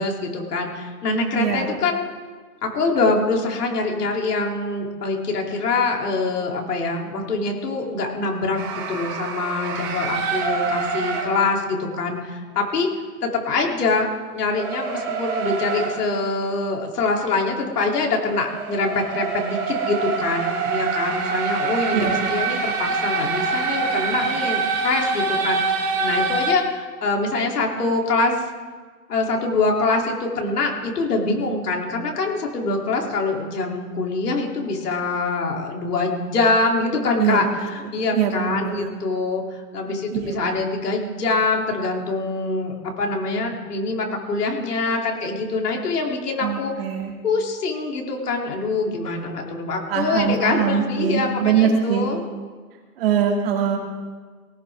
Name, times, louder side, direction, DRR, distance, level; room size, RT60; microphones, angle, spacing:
voice 1, 0.0-2.0 2.6-8.6 8.9-12.9 13.2-28.4 29.1-46.7 47.2-52.2, left 3 dB, 75° left, 0 dB, 3.3 m, -24 dB
voice 2, 1.3-1.7 21.9-22.4 37.2-37.7 38.1-38.9 40.1-40.6 46.4-47.1 49.9-52.1 53.0-53.8, right 8 dB, 40° right, 0 dB, 2.3 m, -23 dB
sound 1, 8.6-11.3 14.5-16.0 17.6-26.5, right 4 dB, 20° right, 1.4 m, -25 dB
18.0 x 17.0 x 3.6 m, 1.5 s
hypercardioid pair, 170°, 47 cm